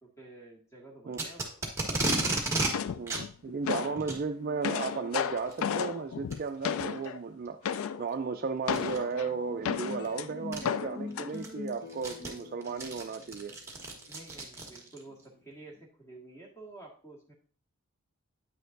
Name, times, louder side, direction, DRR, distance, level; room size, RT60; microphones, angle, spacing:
voice 1, 0.0-1.5 14.1-17.3, right 2 dB, 10° left, 1.8 m, -50 dB
Packing tape duct tape, 1.1-2.7 3.1-3.2 4.0-4.2 5.4-5.6 6.3-6.4 7.0-7.1 8.7-9.0 10.0-10.1 10.5-10.6 11.1-15.0, right 2 dB, 15° right, 1.2 m, -32 dB
sound 1, 2.7-4.0 4.4-7.2 7.6-8.1 8.7-10.3 10.6-11.3, left 7 dB, 75° left, 0.4 m, -33 dB
voice 2, 3.0-13.6, right 5 dB, 40° right, 0.3 m, -35 dB
sound 2, 9.1-15.8, left 3 dB, 50° left, 0.8 m, -44 dB
8.9 x 6.5 x 2.6 m
head